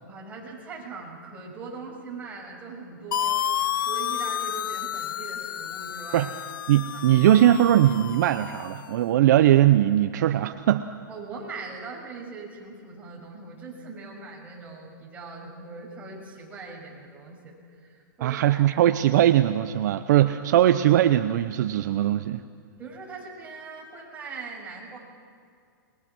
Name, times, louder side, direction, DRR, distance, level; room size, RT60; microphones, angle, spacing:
voice 1, 0.0-3.5 3.8-6.3 6.9-7.4 11.1-18.8 22.8-25.0, right 4 dB, 15° right, -3 dB, 6.3 m, -41 dB
sound 1, 3.1-8.9, left 10 dB, 75° left, 0.5 m, -31 dB
voice 2, 6.7-10.9 18.2-22.4, right 12 dB, 55° right, 10 dB, 0.8 m, -20 dB
28.0 x 21.5 x 6.2 m, 2.3 s
hypercardioid pair, 150°, 11 cm